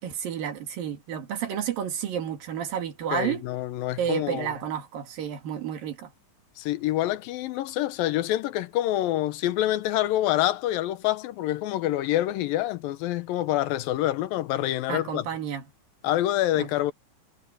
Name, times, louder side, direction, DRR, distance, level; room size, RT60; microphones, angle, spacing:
voice 1, 0.0-3.4 4.0-6.1 14.9-15.6 16.6-16.7, right 9 dB, 80° right, 4.0 m, -31 dB
voice 2, 3.1-4.5 6.6-15.3 16.0-16.9, left 14 dB, 85° left, 2.7 m, -26 dB
omnidirectional pair, 4.0 m